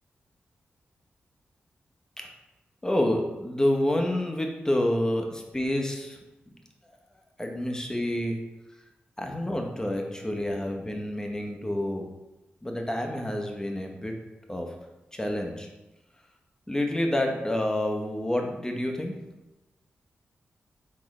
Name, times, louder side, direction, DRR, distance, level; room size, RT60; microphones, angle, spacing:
voice 1, 2.8-6.2 7.4-8.4 9.2-12.0 12.6-14.1 14.5-14.7 15.1-15.7 16.7-19.1, left 1 dB, 15° left, 2 dB, 0.8 m, -28 dB
4.0 x 3.7 x 3.1 m, 1.0 s
cardioid pair, 45°, 4 cm